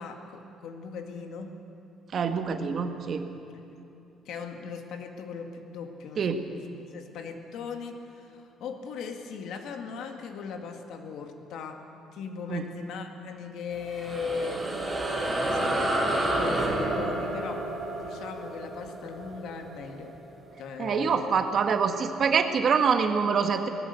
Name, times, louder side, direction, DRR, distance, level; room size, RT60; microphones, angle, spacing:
voice 1, 0.0-1.6 4.3-14.7 15.2-20.2 20.6-21.3, left 5 dB, 70° left, 5 dB, 2.0 m, -39 dB
voice 2, 2.1-3.3 6.2-6.4 12.5-12.6 20.8-23.7, right 6 dB, 40° right, 7 dB, 1.4 m, -25 dB
sound 1, 13.7-20.5, right 1 dB, 10° right, 3.1 m, -30 dB
19.5 x 17.5 x 8.2 m, 2.9 s
cardioid pair, 155°, 0 cm